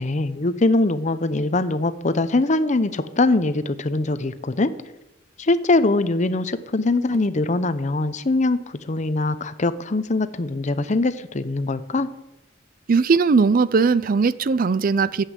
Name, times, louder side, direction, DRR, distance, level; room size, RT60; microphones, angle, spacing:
voice 1, 0.0-4.7 5.4-12.1, left 2 dB, 40° left, 0.7 m, -22 dB
voice 2, 12.9-15.2, right 4 dB, 50° right, 0.4 m, -19 dB
11.5 x 8.2 x 7.4 m
head